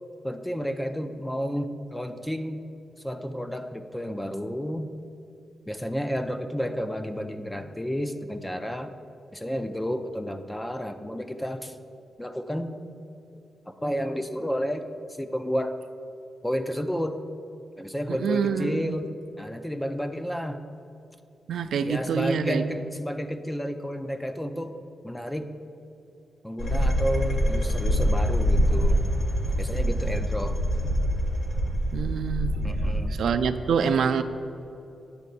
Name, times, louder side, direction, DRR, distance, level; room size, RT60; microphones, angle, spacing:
voice 1, 0.2-2.6 3.0-4.9 5.7-8.9 9.3-11.7 12.2-12.7 13.7-14.9 15.2-15.7 16.4-17.2 17.8-19.1 19.4-20.6 21.8-24.7 25.0-25.6 26.4-29.0 29.6-30.6 32.6-33.2, equal, 5° left, 9 dB, 0.3 m, -31 dB
voice 2, 18.1-19.0 21.5-22.6 31.9-32.5 33.1-34.2, right 6 dB, 80° right, 10 dB, 0.4 m, -26 dB
sound 1, 26.6-33.3, equal, 70° left, 1.1 m, -25 dB
9.4 x 3.6 x 6.9 m, 2.7 s
wide cardioid pair, 160°, 0 cm